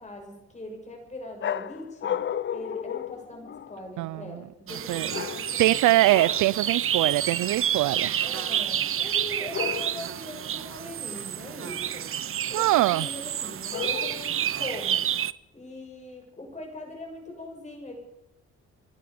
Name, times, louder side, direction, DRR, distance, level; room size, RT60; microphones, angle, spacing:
voice 1, 0.0-2.2 2.5-6.2 8.2-12.1 12.5-15.0 15.5-18.0, left 1 dB, 25° left, 6.7 m, -41 dB
sound 1, 1.4-3.9 5.1-5.7 6.1-6.6 9.5-10.2 13.7-14.4, left 9 dB, 40° left, 0.6 m, -33 dB
voice 2, 4.0-4.4 4.9-5.1 5.6-8.1 12.5-13.1, right 17 dB, 80° right, 0.5 m, -23 dB
sound 2, 4.7-15.3, right 10 dB, 45° right, 0.7 m, -29 dB
24.5 x 11.5 x 5.2 m
cardioid pair, 90°, 30 cm